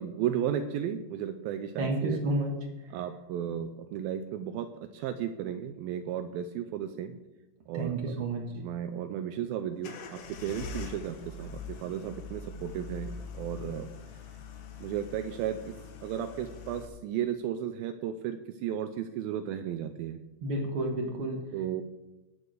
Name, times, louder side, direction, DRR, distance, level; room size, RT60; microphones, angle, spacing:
voice 1, 0.0-2.2 2.9-7.2 7.7-8.2 8.5-13.9 14.8-20.2 21.5-21.8, right 9 dB, 85° right, 9 dB, 2.1 m, -34 dB
voice 2, 1.8-2.5 7.7-8.4 20.4-21.4, right 2 dB, 65° right, 1 dB, 1.3 m, -30 dB
sound 1, 9.8-16.9, left 5 dB, 85° left, 3.5 m, -43 dB
19.0 x 6.4 x 5.0 m, 1.0 s
omnidirectional pair, 4.8 m